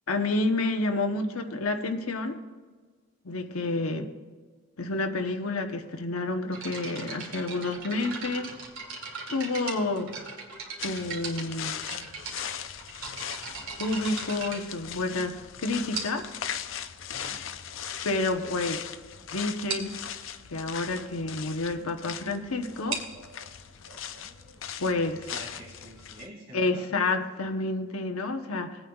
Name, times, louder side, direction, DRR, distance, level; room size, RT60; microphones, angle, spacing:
voice 1, 0.1-2.4 3.2-4.1 4.8-8.5 9.3-10.1 10.8-11.9 13.8-16.3 18.0-18.8 19.3-20.0 20.5-23.0 24.8-25.2 26.5-28.8, left 2 dB, 90° left, 5 dB, 0.9 m, -29 dB
sound 1, 6.5-15.3 15.9-16.4 17.2-17.3 17.9-18.0 18.3-18.5 18.8-18.9 19.2-19.3 19.7-20.0 22.7-26.1, right 4 dB, 85° right, 2.3 m, -39 dB
sound 2, 10.8-26.3, left 8 dB, 65° left, 0.5 m, -39 dB
voice 2, 25.0-26.8, right 1 dB, 55° right, -5 dB, 2.6 m, -47 dB
20.5 x 8.9 x 2.3 m, 1.5 s
head